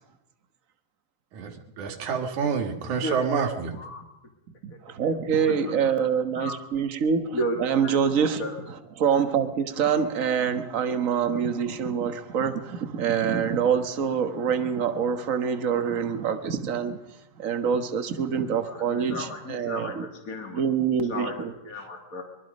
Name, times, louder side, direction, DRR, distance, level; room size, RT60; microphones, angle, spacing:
voice 1, 1.8-3.7, right 6 dB, 90° right, 3.3 m, -27 dB
voice 2, 2.9-3.4 3.7-4.0 4.7-6.1 6.3-6.6 7.3-7.6 7.8-8.0 8.4-8.6 18.6-20.6 21.0-22.2, equal, 30° left, 2.5 m, -34 dB
voice 3, 4.6-8.4 9.0-17.0 17.4-20.1 20.5-21.5, right 7 dB, 45° right, 1.0 m, -25 dB
23.5 x 23.0 x 5.3 m
omnidirectional pair, 3.3 m